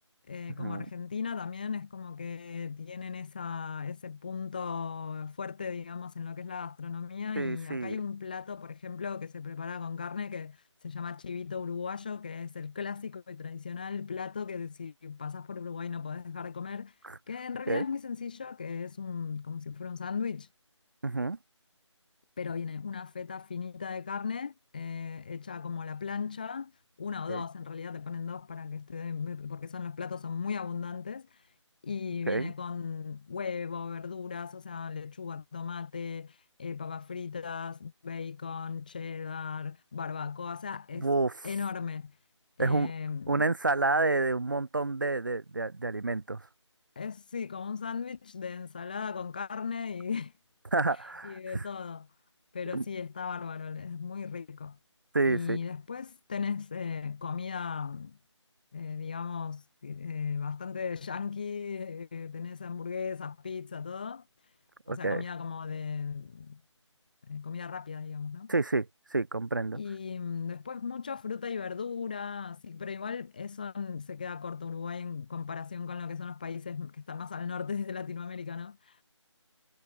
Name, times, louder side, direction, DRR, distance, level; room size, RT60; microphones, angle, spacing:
voice 1, 0.3-10.6 10.8-16.9 17.3-20.5 22.4-26.7 27.0-31.3 31.8-41.1 41.4-42.2 42.6-43.4 47.0-50.3 51.2-52.1 52.5-54.8 55.3-58.2 58.7-64.2 64.9-66.6 67.2-68.5 69.8-79.0, left 6 dB, 15° left, 2.2 m, -37 dB
voice 2, 7.4-8.0 17.0-17.2 17.7-17.8 21.0-21.4 27.3-27.4 32.3-32.5 40.9-41.3 42.6-42.9 43.3-46.5 50.7-51.7 52.7-52.8 55.1-55.6 64.9-65.2 68.5-69.8, right 3 dB, 40° right, 1.5 m, -29 dB
figure-of-eight pair, 175°, 16 cm